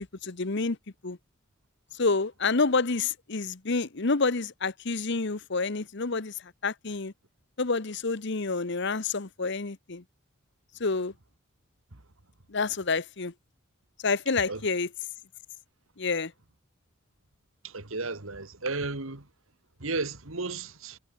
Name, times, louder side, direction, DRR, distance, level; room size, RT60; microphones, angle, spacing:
voice 1, 0.2-0.8 1.0-1.2 2.0-6.3 6.6-7.1 7.6-10.0 10.8-11.1 12.5-13.3 14.0-14.9 16.0-16.3, left 4 dB, 60° left, 1.1 m, -28 dB
voice 2, 17.6-19.3 19.8-21.0, right 3 dB, 80° right, 2.3 m, -34 dB
head